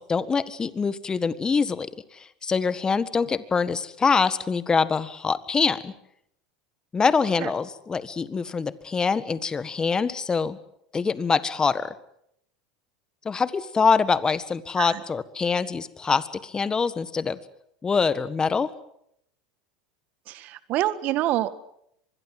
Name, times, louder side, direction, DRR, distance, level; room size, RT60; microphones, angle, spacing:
voice 1, 0.0-1.9 2.4-5.9 6.9-10.6 10.9-11.9 13.2-17.4 17.8-18.7, left 5 dB, 25° left, 16 dB, 1.6 m, -24 dB
voice 2, 20.3-21.6, right 14 dB, 55° right, 15 dB, 1.7 m, -26 dB
24.5 x 21.5 x 7.8 m, 0.74 s
hypercardioid pair, 90°, 3 cm